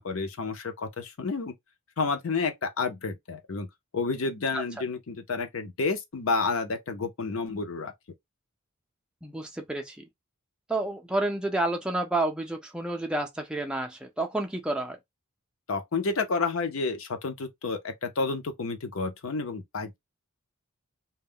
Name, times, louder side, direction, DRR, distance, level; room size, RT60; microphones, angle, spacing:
voice 1, 0.0-1.5 2.0-3.7 3.9-7.9 15.7-20.0, left 4 dB, 65° left, 0.6 m, -30 dB
voice 2, 9.2-10.0 10.7-15.0, right 2 dB, 5° right, 0.4 m, -30 dB
2.2 x 2.1 x 3.5 m
head